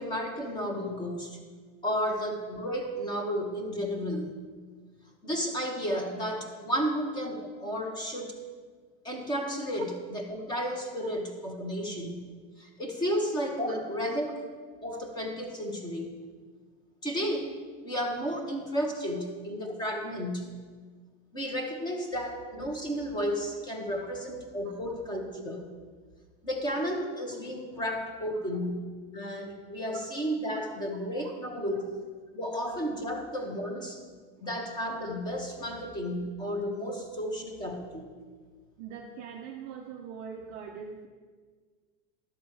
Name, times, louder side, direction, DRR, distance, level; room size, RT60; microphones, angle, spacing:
voice 1, 0.0-1.4 1.8-4.3 5.2-8.3 9.0-12.2 12.6-14.4 14.8-16.1 17.0-17.6 17.8-20.5 21.3-25.7 26.4-28.8 29.1-31.8 32.3-34.0 34.4-38.1, equal, 10° left, 3 dB, 0.9 m, -32 dB
voice 2, 38.8-41.1, right 7 dB, 25° right, 0 dB, 0.4 m, -43 dB
12.0 x 7.1 x 4.7 m, 1.5 s
supercardioid pair, 175°, 34 cm